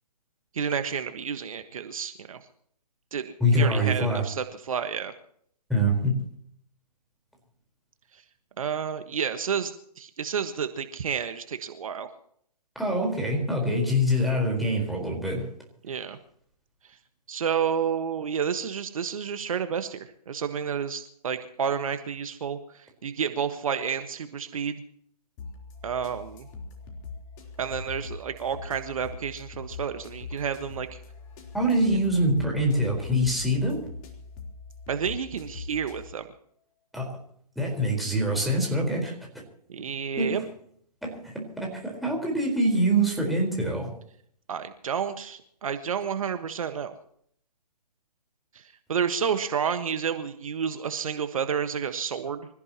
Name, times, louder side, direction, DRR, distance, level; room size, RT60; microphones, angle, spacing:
voice 1, 0.5-2.4 3.1-5.1 8.6-12.1 15.8-16.2 17.3-24.8 25.8-26.5 27.6-31.0 34.9-36.2 39.7-40.4 44.5-46.9 48.5-48.6 48.9-52.5, right 7 dB, 55° right, 9 dB, 1.5 m, -30 dB
voice 2, 3.4-4.2 5.7-6.2 12.7-15.5 31.5-33.9 36.9-37.2 37.6-39.1 40.2-40.5 41.0-43.9, equal, ahead, -2 dB, 4.3 m, -25 dB
sound 1, 25.4-36.0, left 4 dB, 30° left, 3.7 m, -42 dB
26.5 x 15.0 x 3.0 m, 0.65 s
figure-of-eight pair, 140°, 21 cm